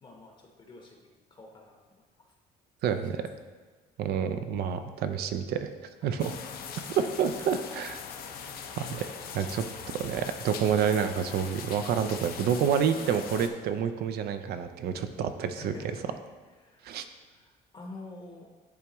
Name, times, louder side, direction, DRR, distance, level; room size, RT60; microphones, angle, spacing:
voice 1, 0.0-1.7 2.9-3.0 6.0-6.2 6.7-7.0 9.0-9.5 14.9-15.1 15.6-16.0 16.6-16.9 17.3-18.5, left 2 dB, 30° left, 0 dB, 0.8 m, -48 dB
voice 2, 2.8-3.3 4.0-5.7 6.0-6.4 7.0-8.0 8.8-9.7 9.9-15.7 16.8-17.0, right 7 dB, 70° right, 9 dB, 0.5 m, -28 dB
sound 1, 6.2-13.5, left 7 dB, 65° left, 0.7 m, -41 dB
10.0 x 3.5 x 3.0 m, 1.4 s
cardioid pair, 110°, 17 cm